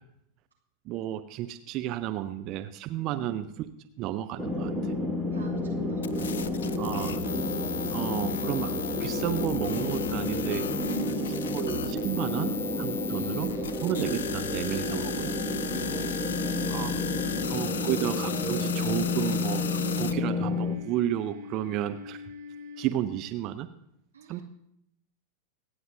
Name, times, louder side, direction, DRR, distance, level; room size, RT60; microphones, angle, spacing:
voice 1, 0.9-3.7 4.0-4.9 6.8-7.2 7.9-10.8 11.5-13.5 13.8-15.4 16.7-16.9 17.5-22.2 22.8-23.7 24.3-24.4, right 12 dB, 40° right, 10 dB, 0.6 m, -32 dB
voice 2, 3.1-3.5 5.3-6.8 10.8-11.4 13.1-13.8 15.4-18.0 24.1-24.4, right 2 dB, 75° right, -2 dB, 2.2 m, -44 dB
sound 1, 4.4-20.8, left 2 dB, ahead, 1.3 m, -31 dB
sound 2, 6.0-20.1, left 7 dB, 65° left, 0.6 m, -36 dB
sound 3, 9.3-23.2, left 3 dB, 55° right, 2.5 m, -44 dB
25.0 x 9.5 x 2.7 m, 0.77 s
figure-of-eight pair, 90°, 0 cm